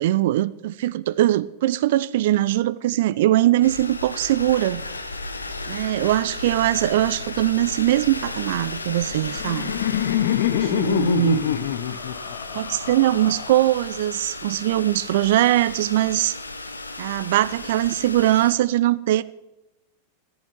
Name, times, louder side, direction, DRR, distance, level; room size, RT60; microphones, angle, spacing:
voice 1, 0.0-4.8 5.7-9.7 10.6-11.5 12.5-16.4 17.0-19.2, right 14 dB, 55° right, 0.5 m, -21 dB
sound 1, 3.6-18.5, left 3 dB, 80° left, 1.0 m, -34 dB
Laughter, 8.9-13.9, left 11 dB, 55° left, 0.8 m, -26 dB
14.5 x 14.0 x 4.6 m
figure-of-eight pair, 90°, 0 cm